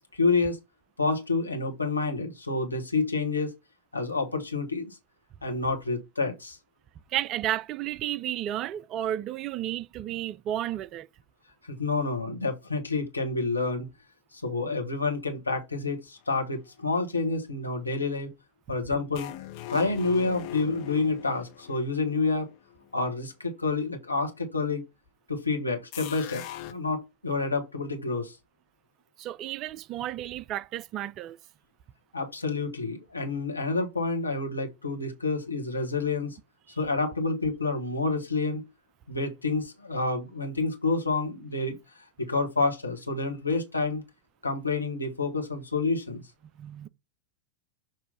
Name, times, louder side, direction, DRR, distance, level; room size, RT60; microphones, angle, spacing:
voice 1, 0.2-0.6 1.0-3.5 3.9-5.0 5.4-6.6 11.6-13.9 14.3-18.3 18.7-19.3 19.7-22.5 22.9-24.8 25.3-28.4 32.1-36.4 36.8-38.6 39.1-41.8 42.2-44.0 44.4-46.2, left 3 dB, 80° left, 1.3 m, -28 dB
voice 2, 7.1-11.1 29.2-31.4 36.7-36.8 46.6-46.9, right 12 dB, 35° right, 0.3 m, -32 dB
sound 1, 19.1-22.9 25.9-26.7, left 13 dB, 45° left, 0.7 m, -41 dB
6.6 x 3.0 x 5.3 m
figure-of-eight pair, 90°, 0 cm